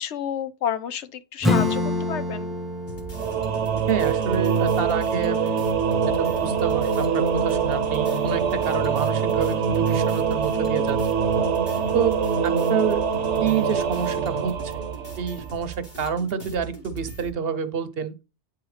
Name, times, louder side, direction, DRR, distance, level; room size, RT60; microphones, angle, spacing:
voice 1, 0.0-2.5, left 8 dB, 80° left, 1.0 m, -30 dB
Acoustic guitar / Strum, 1.4-6.6, left 2 dB, ahead, 0.7 m, -29 dB
sound 1, 2.9-17.3, right 6 dB, 45° left, 2.0 m, -39 dB
Singing / Musical instrument, 3.1-15.6, right 6 dB, 85° right, 1.1 m, -24 dB
voice 2, 3.9-5.7 6.1-11.0 11.9-12.2 12.4-13.0 13.4-14.9 15.2-18.1, right 7 dB, 65° right, 0.9 m, -28 dB
9.0 x 4.7 x 3.2 m
omnidirectional pair, 1.2 m